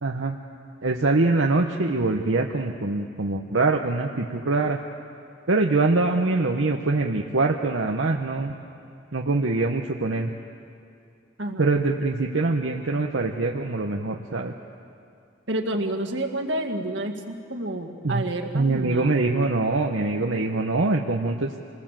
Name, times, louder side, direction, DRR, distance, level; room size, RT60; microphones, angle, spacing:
voice 1, 0.0-0.4 0.8-4.8 5.5-8.5 9.1-10.3 11.6-14.5 18.0-18.3 18.5-21.6, right 3 dB, 85° right, 2 dB, 1.1 m, -23 dB
voice 2, 11.4-11.7 15.5-19.2, right 1 dB, 70° right, 2 dB, 2.0 m, -29 dB
27.0 x 20.5 x 7.5 m, 2.5 s
head